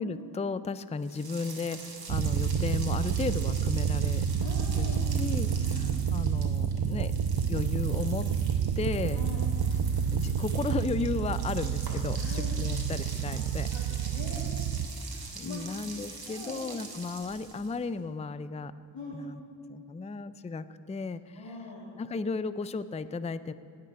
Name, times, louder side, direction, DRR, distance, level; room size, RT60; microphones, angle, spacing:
voice 1, 0.0-4.3 4.7-4.9 5.1-7.1 7.4-8.3 8.8-9.2 10.1-13.7 15.4-18.7 19.1-19.4 19.7-21.6 22.0-23.5, left 4 dB, 15° left, 14 dB, 0.4 m, -34 dB
sound 1, 1.0-17.8, right 3 dB, 55° right, 2.5 m, -45 dB
sound 2, 2.1-14.9, right 7 dB, 80° right, 0.7 m, -29 dB
voice 2, 4.4-5.1 5.5-6.1 9.1-9.5 11.9-12.5 13.2-13.4 13.7-14.5 15.1-15.6 16.3-16.6 18.9-19.2 21.3-21.9, left 3 dB, 80° left, -5 dB, 3.1 m, -43 dB
17.5 x 6.7 x 9.5 m, 2.5 s
wide cardioid pair, 105°, 45 cm